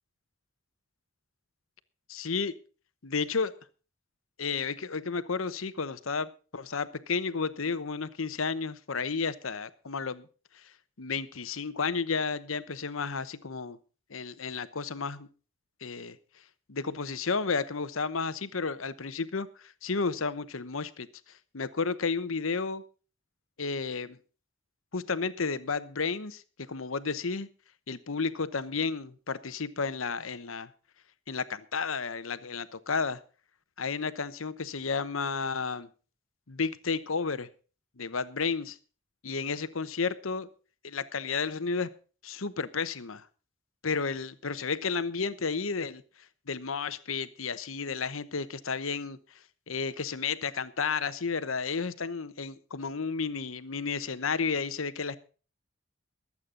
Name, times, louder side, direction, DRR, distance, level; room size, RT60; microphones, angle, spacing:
voice 1, 2.1-2.5 3.0-3.5 4.4-10.3 10.5-10.6 11.0-13.8 14.1-15.3 15.8-16.2 16.7-22.8 23.6-24.2 24.9-27.5 27.9-30.7 31.3-33.2 33.8-35.9 36.5-37.5 38.0-38.8 39.2-40.5 40.8-41.9 42.2-43.3 43.8-46.0 46.5-49.2 49.7-55.2, left 5 dB, 85° left, 14 dB, 1.0 m, -32 dB
24.0 x 8.5 x 3.9 m, 0.37 s
head